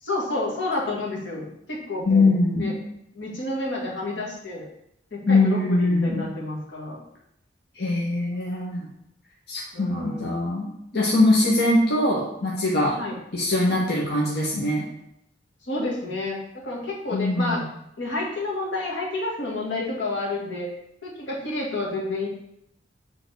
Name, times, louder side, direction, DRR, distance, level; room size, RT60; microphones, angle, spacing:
voice 1, 0.0-2.7 3.1-4.6 5.1-7.0 9.7-10.3 13.0-13.2 15.6-17.6 18.0-20.7 21.0-22.3, left 2 dB, 80° left, -3 dB, 1.9 m, -30 dB
voice 2, 2.0-2.7 5.3-6.2 7.8-8.9 9.5-12.9 13.3-14.8 17.1-17.6, left 2 dB, 60° left, -5 dB, 1.3 m, -22 dB
6.8 x 3.8 x 4.7 m, 0.78 s
head